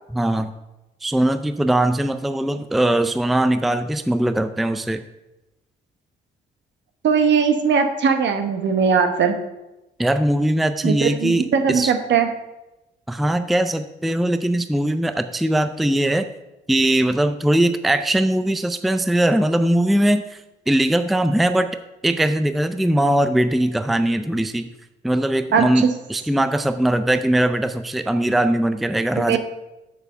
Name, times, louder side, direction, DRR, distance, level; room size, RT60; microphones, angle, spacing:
voice 1, 0.1-0.5 1.0-5.0 10.0-11.9 13.1-16.3 16.7-21.7 22.0-24.7 25.0-29.4, right 1 dB, ahead, 9 dB, 0.4 m, -20 dB
voice 2, 7.0-9.4 10.8-12.3 25.5-25.9 29.3-29.4, right 6 dB, 65° right, 7 dB, 1.1 m, -19 dB
7.0 x 6.8 x 5.4 m, 0.99 s
cardioid pair, 90°, 20 cm